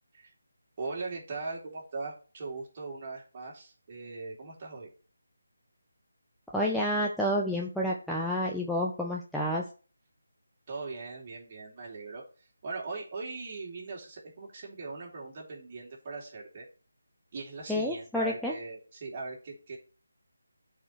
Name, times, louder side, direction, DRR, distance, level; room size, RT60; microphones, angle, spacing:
voice 1, 0.8-4.9 10.7-12.2 12.6-16.7 17.3-19.8, right 3 dB, 30° right, -2 dB, 2.8 m, -40 dB
voice 2, 6.5-9.6 17.7-18.5, equal, ahead, -4 dB, 0.6 m, -29 dB
12.5 x 4.7 x 3.1 m, 0.37 s
figure-of-eight pair, 160°, 0 cm